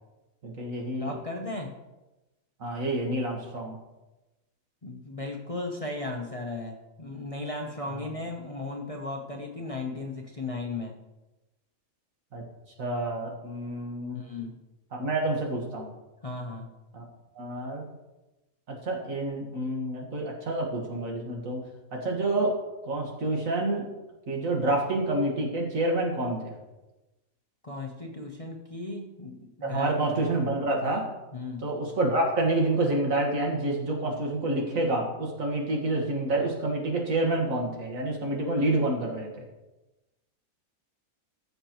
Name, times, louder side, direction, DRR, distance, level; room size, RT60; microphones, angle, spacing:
voice 1, 0.4-1.1 2.6-3.8 7.9-8.1 12.3-12.4 12.8-14.2 14.9-15.9 16.9-17.0 17.4-17.8 18.7-21.6 21.9-22.6 22.8-23.9 24.3-26.5 29.6-31.1 31.6-39.4, right 2 dB, 65° right, 0 dB, 2.0 m, -28 dB
voice 2, 1.0-1.8 4.8-11.0 14.1-14.6 16.2-16.7 27.6-29.9 31.3-31.6, left 2 dB, 30° left, 1 dB, 0.7 m, -36 dB
14.5 x 6.6 x 3.0 m, 1.0 s
omnidirectional pair, 1.5 m